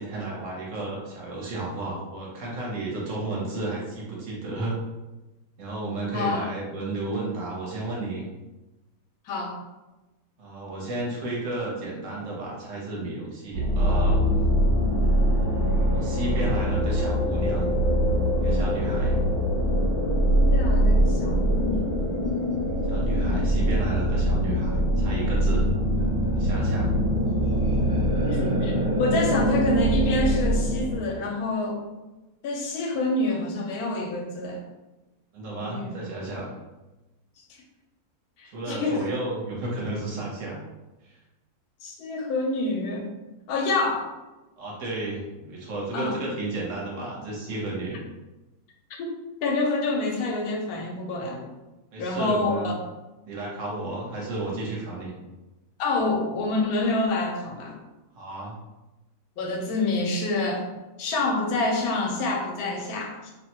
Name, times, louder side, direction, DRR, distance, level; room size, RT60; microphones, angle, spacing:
voice 1, 0.0-4.8 5.6-8.3 10.4-14.2 15.9-17.7 18.4-19.2 22.9-25.6 26.3-26.9 35.3-36.5 38.4-40.6 41.0-41.2 44.6-48.0 51.9-52.7 53.3-55.2 58.1-58.5, right 2 dB, 65° right, -4 dB, 1.1 m, -32 dB
voice 2, 6.1-6.4 9.3-9.5 20.3-22.1 28.2-28.7 29.0-31.8 32.4-34.6 35.6-36.0 38.4-39.0 41.8-43.1 43.5-44.1 45.9-46.2 49.0-49.1 49.4-51.5 52.0-52.7 55.8-57.8 59.4-60.6 61.0-63.3, left 2 dB, 90° left, 1 dB, 1.1 m, -27 dB
sound 1, 13.5-31.0, equal, 40° right, 0.8 m, -23 dB
2.7 x 2.1 x 2.8 m, 1.1 s
omnidirectional pair, 1.5 m